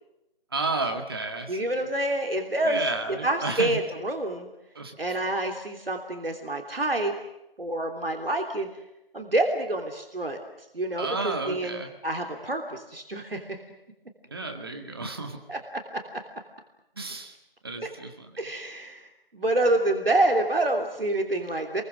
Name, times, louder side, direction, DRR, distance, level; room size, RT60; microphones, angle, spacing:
voice 1, 0.5-1.6 2.6-3.8 4.8-5.0 11.0-11.9 14.3-15.4 17.0-17.3 17.6-18.4, right 3 dB, 25° right, 5 dB, 1.9 m, -32 dB
voice 2, 1.5-2.9 3.2-4.5 5.0-7.2 7.6-8.7 9.1-10.4 10.7-13.6 15.5-15.8 16.1-16.2 17.8-17.9 18.4-21.8, right 1 dB, 75° right, 3 dB, 3.2 m, -27 dB
29.0 x 22.5 x 6.4 m, 0.88 s
figure-of-eight pair, 170°, 29 cm